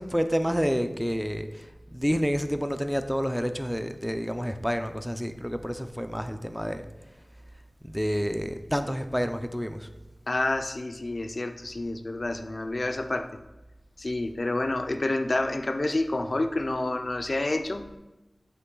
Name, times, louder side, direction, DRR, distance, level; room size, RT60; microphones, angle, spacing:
voice 1, 0.0-6.9 7.8-9.9, equal, ahead, 8 dB, 0.5 m, -29 dB
voice 2, 10.3-13.3 14.0-17.9, left 2 dB, 55° left, 8 dB, 0.4 m, -28 dB
8.2 x 3.1 x 3.8 m, 1.0 s
wide cardioid pair, 40°, 0 cm